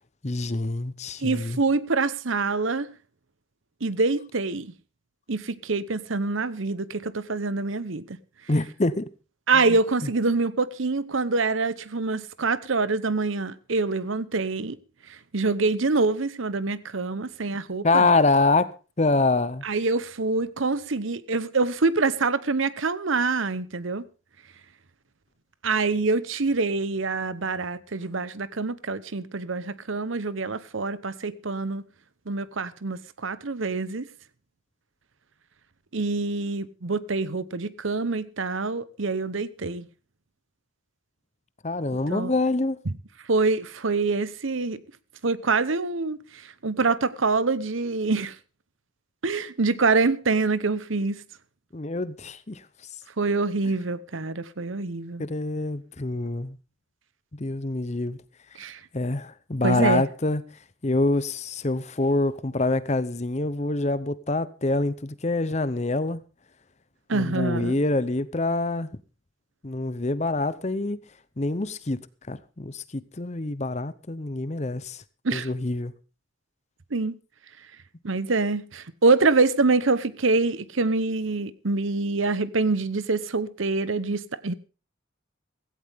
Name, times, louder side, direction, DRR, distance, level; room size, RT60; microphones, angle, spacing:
voice 1, 0.2-1.6 8.5-9.1 9.7-9.8 17.8-19.6 41.6-42.8 51.7-52.6 55.2-56.6 57.3-58.2 58.9-60.4 60.8-66.2 67.1-68.9 69.6-71.0 71.4-75.0 75.3-75.9, left 2 dB, 35° left, 0.7 m, -26 dB
voice 2, 1.2-2.9 3.8-4.7 5.3-8.2 9.5-14.8 15.1-18.1 19.6-24.0 25.6-31.8 32.3-34.1 35.9-39.9 41.9-42.3 42.9-43.0 43.3-44.8 45.2-48.4 49.2-51.2 53.2-55.2 58.6-58.8 59.6-60.0 67.1-67.8 75.2-75.5 76.9-77.1 78.0-84.5, right 3 dB, 75° right, 1.0 m, -25 dB
16.5 x 16.0 x 3.6 m
head